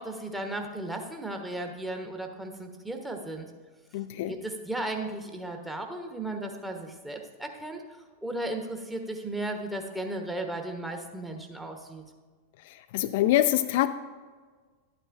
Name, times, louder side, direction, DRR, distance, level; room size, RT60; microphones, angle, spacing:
voice 1, 0.0-3.5 4.3-12.0, right 1 dB, 5° right, 3 dB, 1.1 m, -35 dB
voice 2, 3.9-4.3 12.9-13.9, left 14 dB, 50° left, 10 dB, 0.3 m, -24 dB
11.5 x 9.0 x 2.6 m, 1.5 s
figure-of-eight pair, 90°, 0 cm